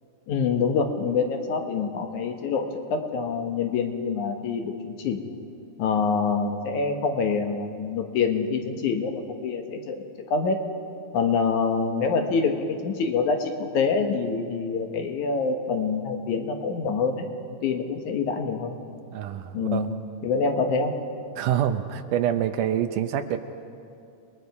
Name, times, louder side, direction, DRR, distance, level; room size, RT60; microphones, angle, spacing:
voice 1, 0.3-5.2 5.8-10.6 11.1-18.8 19.5-19.9 20.2-21.0, left 5 dB, 65° left, 4 dB, 2.4 m, -26 dB
voice 2, 19.1-19.9 21.4-23.4, right 10 dB, 75° right, 9 dB, 2.1 m, -26 dB
29.0 x 20.5 x 4.8 m, 2.6 s
omnidirectional pair, 4.0 m